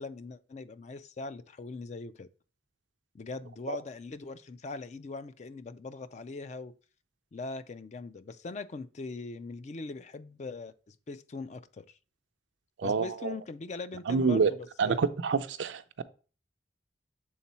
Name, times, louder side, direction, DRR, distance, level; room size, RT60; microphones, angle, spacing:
voice 1, 0.0-2.3 3.1-6.7 7.3-12.0 12.8-15.0, left 3 dB, 40° left, 0.4 m, -41 dB
voice 2, 12.8-13.3 14.1-14.5 14.8-16.0, right 5 dB, 80° right, 0.5 m, -27 dB
7.2 x 3.7 x 4.2 m
head